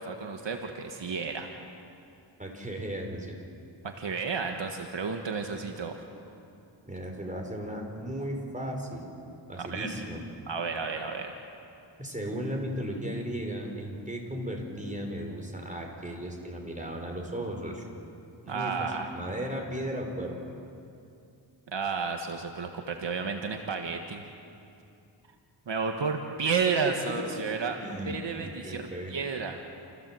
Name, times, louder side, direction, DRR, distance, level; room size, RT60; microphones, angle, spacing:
voice 1, 0.0-1.5 3.8-5.9 9.6-9.9 10.5-11.3 18.5-19.1 21.7-24.2 25.7-27.8 28.0-29.6, right 5 dB, 70° right, 4 dB, 1.5 m, -32 dB
voice 2, 2.4-3.4 6.8-9.1 9.5-10.2 12.0-17.8 18.4-20.4 27.0-27.4 27.7-29.1, right 1 dB, 15° right, 1 dB, 5.1 m, -36 dB
29.0 x 15.5 x 7.7 m, 2.6 s
cardioid pair, 65°, 45 cm